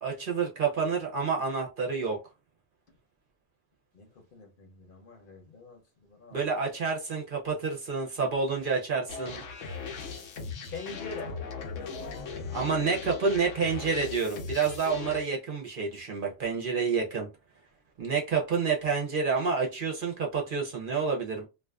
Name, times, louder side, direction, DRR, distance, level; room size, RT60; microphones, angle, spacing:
voice 1, 0.0-2.2 6.3-9.4 12.5-17.3 18.0-21.5, right 5 dB, 55° right, 0.7 m, -29 dB
voice 2, 3.9-6.5 10.7-11.3, left 4 dB, 50° left, 0.9 m, -44 dB
sound 1, 9.1-15.2, left 5 dB, 90° left, 1.0 m, -38 dB
2.5 x 2.4 x 2.2 m
omnidirectional pair, 1.2 m